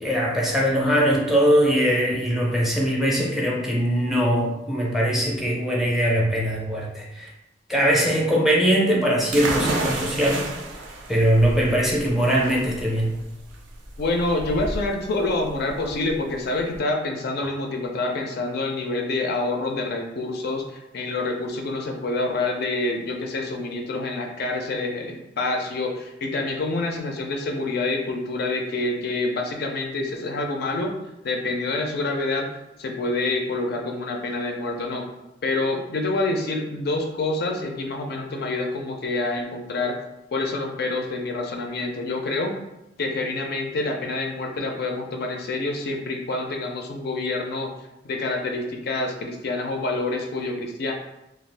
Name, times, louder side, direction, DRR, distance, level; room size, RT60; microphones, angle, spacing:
voice 1, 0.0-7.3 7.7-10.4 11.1-13.1, equal, ahead, -3 dB, 0.5 m, -21 dB
sound 1, 9.3-16.8, right 2 dB, 85° right, 0.5 m, -31 dB
voice 2, 14.0-30.9 31.2-32.5 32.8-35.1 35.4-40.0 40.3-42.5 43.0-47.7 48.0-50.9, left 2 dB, 60° left, 2 dB, 0.4 m, -27 dB
2.4 x 2.3 x 3.3 m, 0.92 s
head